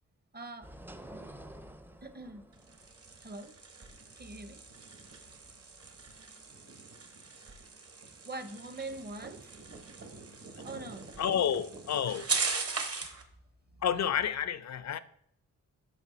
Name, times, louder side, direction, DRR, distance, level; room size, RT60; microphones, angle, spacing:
voice 1, 0.3-0.7 2.0-2.8 3.2-3.5 4.2-4.6 8.3-9.5 10.6-11.1, right 2 dB, 30° right, 0.8 m, -43 dB
sound 1, 0.6-5.8, right 1 dB, 5° right, 0.5 m, -51 dB
sound 2, 2.5-13.2, right 4 dB, 45° right, 1.2 m, -40 dB
voice 2, 11.2-12.3 13.8-15.0, left 8 dB, 60° left, 0.4 m, -30 dB
6.0 x 4.7 x 4.2 m
cardioid pair, 65°, 32 cm